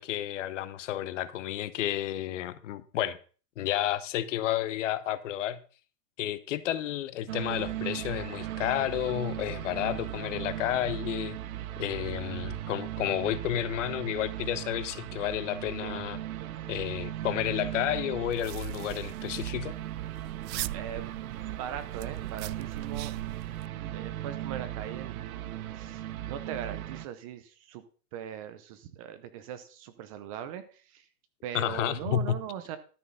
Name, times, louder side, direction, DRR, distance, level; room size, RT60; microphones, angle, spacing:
voice 1, 0.0-3.2 3.6-5.6 6.2-11.4 11.8-16.2 16.7-19.7 31.5-32.4, left 12 dB, 50° left, 1.0 m, -31 dB
sound 1, 7.3-27.1, right 13 dB, 60° right, 1.0 m, -37 dB
sound 2, 18.2-23.7, right 16 dB, 85° right, 0.6 m, -41 dB
voice 2, 20.7-23.1 23.7-27.8 28.1-31.1 31.4-32.8, right 9 dB, 20° right, 0.6 m, -40 dB
13.0 x 6.2 x 5.5 m
hypercardioid pair, 155°, 49 cm